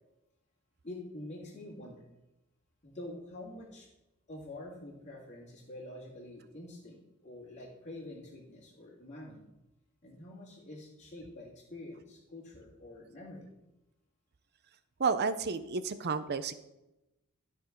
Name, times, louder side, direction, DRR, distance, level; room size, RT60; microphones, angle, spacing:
voice 1, 0.8-2.1 2.8-3.9 4.3-9.5 10.0-13.5, left 1 dB, 30° left, -5 dB, 2.1 m, -46 dB
voice 2, 15.0-16.5, right 5 dB, 50° right, 13 dB, 0.6 m, -31 dB
12.5 x 4.5 x 5.9 m, 0.95 s
head